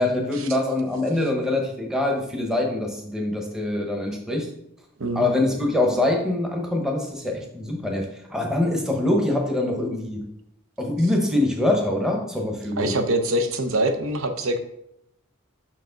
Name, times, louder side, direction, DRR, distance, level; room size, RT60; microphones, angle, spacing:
voice 1, 0.0-4.5 5.2-10.3 10.8-12.9, left 1 dB, 5° right, 1 dB, 0.8 m, -24 dB
voice 2, 12.8-14.6, right 1 dB, 80° right, 8 dB, 0.7 m, -24 dB
6.0 x 4.7 x 3.8 m, 0.78 s
head